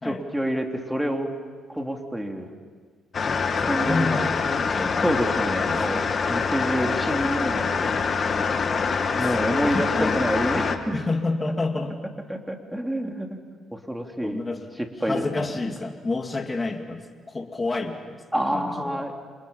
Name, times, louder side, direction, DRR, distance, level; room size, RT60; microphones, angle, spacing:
voice 1, 0.0-1.3 1.7-2.5 3.6-4.2 5.0-7.9 9.2-11.0 12.3-13.4 13.7-14.4 15.0-15.5 18.3-19.1, equal, 5° right, 2 dB, 3.3 m, -28 dB
sound 1, 3.1-10.8, left 5 dB, 45° left, 1.9 m, -25 dB
voice 2, 3.3-5.1 5.5-5.8 8.7-10.2 10.9-12.0 14.2-14.6 15.0-18.2 18.5-19.1, left 3 dB, 25° left, 4 dB, 2.3 m, -30 dB
29.0 x 28.5 x 5.7 m, 1.5 s
cardioid pair, 90°, 0 cm